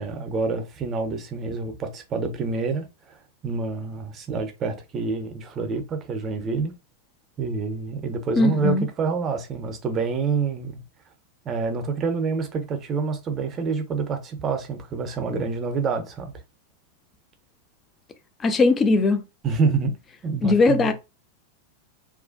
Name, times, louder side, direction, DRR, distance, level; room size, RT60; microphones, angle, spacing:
voice 1, 0.0-6.7 7.4-10.8 11.4-16.3 19.4-20.0 20.2-20.9, right 4 dB, 30° right, 0.5 m, -27 dB
voice 2, 8.4-8.9 18.4-19.2 20.4-20.9, left 3 dB, 20° left, 0.4 m, -19 dB
2.4 x 2.1 x 2.4 m
figure-of-eight pair, 90°, 0 cm